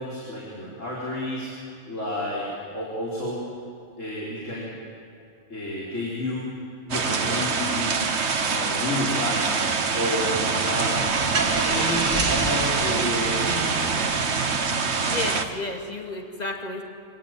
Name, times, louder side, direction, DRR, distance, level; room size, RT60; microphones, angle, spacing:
voice 1, 0.0-1.5 1.9-3.4 4.0-4.7 5.5-6.5 6.8-7.9 8.5-9.5 9.9-11.1 11.6-13.8, left 1 dB, 80° left, -6 dB, 4.8 m, -30 dB
sound 1, 6.9-15.4, right 5 dB, 60° right, 1.5 m, -25 dB
Car / Engine starting, 11.0-15.6, right 3 dB, 85° right, 2.7 m, -31 dB
voice 2, 15.1-16.8, left 2 dB, 35° left, 2 dB, 2.5 m, -32 dB
26.5 x 17.5 x 9.1 m, 2.6 s
omnidirectional pair, 1.3 m